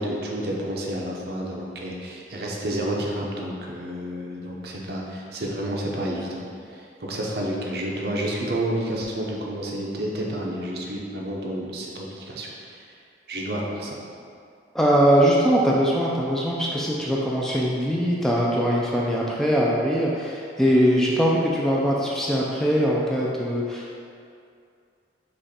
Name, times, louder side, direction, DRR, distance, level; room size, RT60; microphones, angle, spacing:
voice 1, 0.0-6.4 6.7-12.8 13.3-14.0, right 1 dB, 60° right, -2 dB, 0.6 m, -30 dB
voice 2, 14.7-24.0, equal, 5° left, -5 dB, 0.3 m, -21 dB
5.0 x 2.5 x 4.2 m, 2.4 s
head